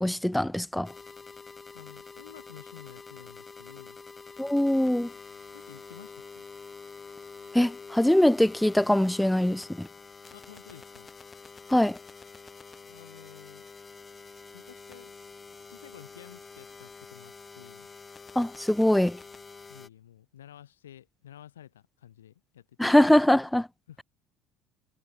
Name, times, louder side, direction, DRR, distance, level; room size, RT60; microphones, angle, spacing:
voice 1, 0.0-0.9 4.4-5.1 7.5-9.9 11.7-12.0 18.4-19.2 22.8-23.7, left 1 dB, 5° left, 0.5 m, -22 dB
sound 1, 0.8-19.9, left 4 dB, 25° left, 4.1 m, -47 dB
voice 2, 1.7-4.0 5.5-6.4 10.3-11.1 12.8-13.7 14.5-15.3 15.7-17.9 19.7-22.9 23.9-24.0, left 11 dB, 80° left, 1.3 m, -51 dB
figure-of-eight pair, 60°, 0 cm